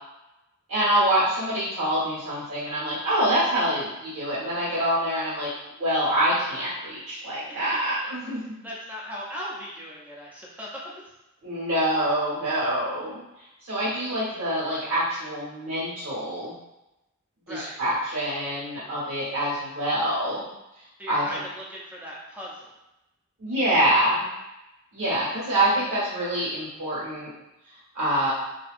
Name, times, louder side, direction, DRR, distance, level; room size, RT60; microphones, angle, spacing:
voice 1, 0.7-5.5 5.8-8.5 11.4-13.2 13.6-16.5 17.5-20.4 21.1-21.4 23.4-24.2 24.9-27.3 27.9-28.3, right 1 dB, 80° right, -10 dB, 1.5 m, -25 dB
voice 2, 8.0-10.8 11.8-11.9 12.8-13.1 17.5-17.8 21.0-22.8, equal, 5° right, -5 dB, 0.6 m, -39 dB
2.9 x 2.7 x 2.5 m, 0.93 s
head